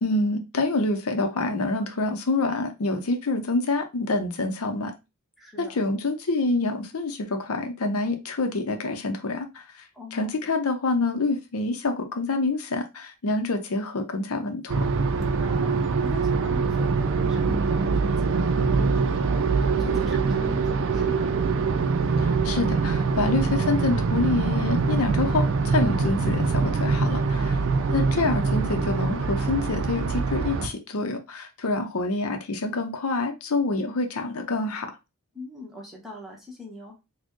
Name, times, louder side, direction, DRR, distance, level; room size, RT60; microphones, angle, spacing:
voice 1, 0.0-4.9 5.6-9.9 10.1-14.9 22.2-27.5 27.9-34.9, left 3 dB, 90° left, 6 dB, 0.6 m, -27 dB
voice 2, 5.4-5.8 9.9-10.3 15.2-21.4 27.5-27.9 35.3-37.0, left 2 dB, ahead, -3 dB, 1.0 m, -42 dB
sound 1, 14.7-30.7, right 4 dB, 60° right, 0.4 m, -24 dB
4.2 x 2.2 x 3.0 m, 0.25 s
head